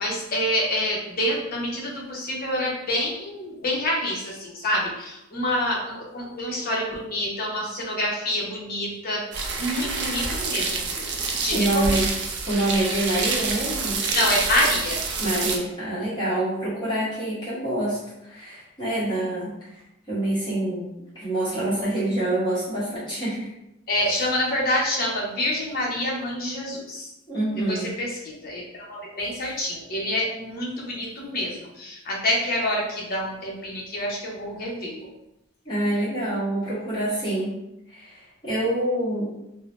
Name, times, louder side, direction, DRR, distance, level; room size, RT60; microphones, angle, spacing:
voice 1, 0.0-9.3 9.6-12.0 14.1-15.0 23.9-27.1 27.7-35.1, left 1 dB, 45° left, -3 dB, 0.7 m, -27 dB
sound 1, 9.3-15.6, right 4 dB, 50° right, 0.4 m, -27 dB
voice 2, 11.5-12.1 12.5-14.0 15.2-19.8 20.1-23.5 27.3-27.9 35.6-37.6 37.9-39.3, right 1 dB, 20° left, -11 dB, 1.1 m, -26 dB
2.6 x 2.0 x 3.1 m, 0.88 s
head